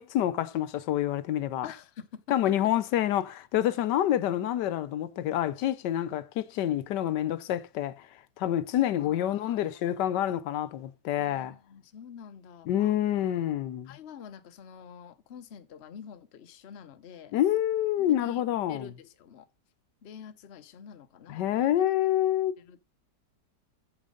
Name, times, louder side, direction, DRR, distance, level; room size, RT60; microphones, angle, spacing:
voice 1, 0.0-1.7 2.3-8.1 8.4-11.5 12.7-13.9 17.3-18.9 21.3-22.6, left 12 dB, 85° left, 1.3 m, -27 dB
voice 2, 1.6-2.7 9.0-9.8 11.2-13.0 13.9-17.3 18.0-18.4 18.7-19.5 20.0-21.7 22.7-22.8, left 8 dB, 50° left, 0.9 m, -47 dB
8.7 x 7.2 x 3.8 m
omnidirectional pair, 1.8 m